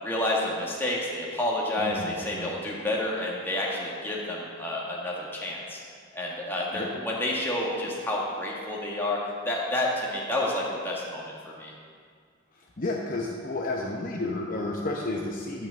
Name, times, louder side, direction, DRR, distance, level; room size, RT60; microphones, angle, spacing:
voice 1, 0.0-5.8 6.1-9.2 9.4-11.2 11.6-11.7, left 1 dB, 10° left, -4 dB, 1.8 m, -29 dB
voice 2, 1.8-2.5 6.7-6.9 12.8-15.7, left 2 dB, 40° left, -1 dB, 0.8 m, -31 dB
12.0 x 5.6 x 7.6 m, 2.1 s
head